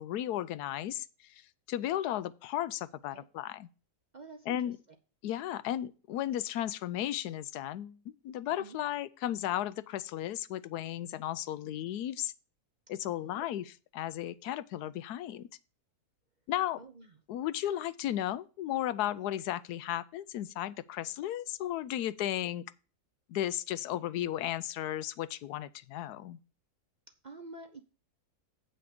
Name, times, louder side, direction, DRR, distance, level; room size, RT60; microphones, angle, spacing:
voice 1, 0.0-3.7 4.5-4.8 5.2-12.3 12.9-15.5 16.5-16.8 17.3-22.6 23.3-26.4, left 12 dB, 90° left, 1.1 m, -35 dB
voice 2, 4.1-4.6 8.6-8.8 11.6-11.8 13.0-13.4 16.8-17.1 27.2-27.8, right 3 dB, 45° right, 0.6 m, -48 dB
8.4 x 5.9 x 5.1 m
omnidirectional pair, 1.6 m